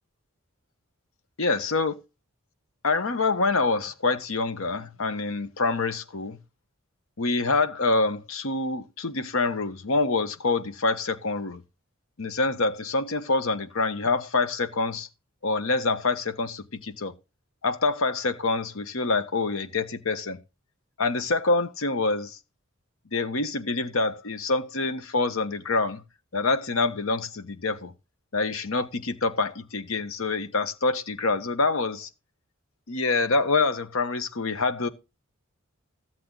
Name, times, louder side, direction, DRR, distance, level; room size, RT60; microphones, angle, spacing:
voice 1, 1.4-1.9 2.8-6.4 7.2-11.6 12.2-15.1 15.4-17.1 17.6-20.4 21.0-22.4 23.1-26.0 26.3-27.9 28.3-32.1 32.9-34.9, left 3 dB, 75° left, 1.0 m, -26 dB
13.5 x 7.6 x 3.8 m
head